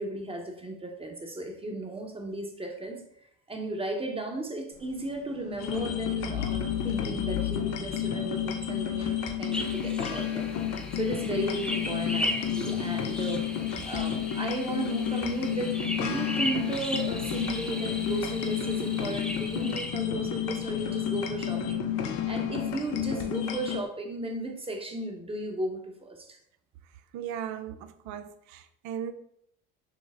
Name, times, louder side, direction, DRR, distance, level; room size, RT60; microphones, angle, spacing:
voice 1, 0.0-3.0 3.5-10.5 10.9-13.4 13.8-26.4, right 2 dB, 20° right, 0.9 m, -35 dB
sound 1, 4.7-9.3 9.7-23.3 23.7-23.9, left 3 dB, 45° left, 1.1 m, -43 dB
sound 2, 5.6-23.8, left 9 dB, 75° left, 0.5 m, -31 dB
sound 3, 9.5-20.0, equal, 5° left, 0.5 m, -37 dB
voice 2, 27.1-29.1, right 9 dB, 70° right, 0.5 m, -37 dB
5.6 x 2.0 x 3.5 m
supercardioid pair, 75°, 30 cm